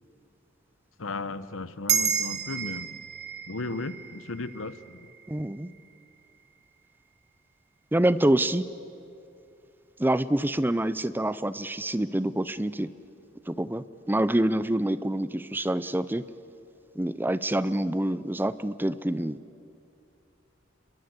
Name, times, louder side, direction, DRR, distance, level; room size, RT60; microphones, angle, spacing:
voice 1, 1.0-3.0 3.5-5.1, left 3 dB, 90° left, 14 dB, 1.0 m, -35 dB
sound 1, 1.9-6.6, right 8 dB, 55° right, 1.6 m, -32 dB
voice 2, 5.3-5.7 7.9-8.6 10.0-12.9 13.5-16.3 16.9-19.4, right 1 dB, 10° right, 15 dB, 0.5 m, -26 dB
28.5 x 22.5 x 8.1 m, 2.5 s
head